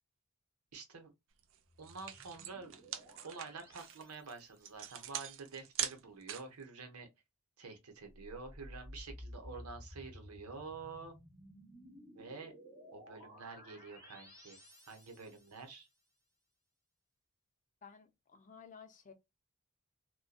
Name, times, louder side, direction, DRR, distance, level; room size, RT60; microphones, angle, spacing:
voice 1, 0.7-1.1 1.8-2.7 3.2-7.1 7.6-11.1 12.1-12.5 12.9-14.6 14.9-15.9, right 4 dB, 80° right, 0.8 m, -48 dB
sound 1, 1.4-1.6 1.8-6.6, right 10 dB, 60° right, 0.4 m, -42 dB
sound 2, 1.7-4.8 8.1-15.8, equal, 15° right, 1.0 m, -55 dB
voice 2, 17.8-19.1, left 6 dB, 35° left, 0.5 m, -55 dB
2.6 x 2.2 x 2.2 m
head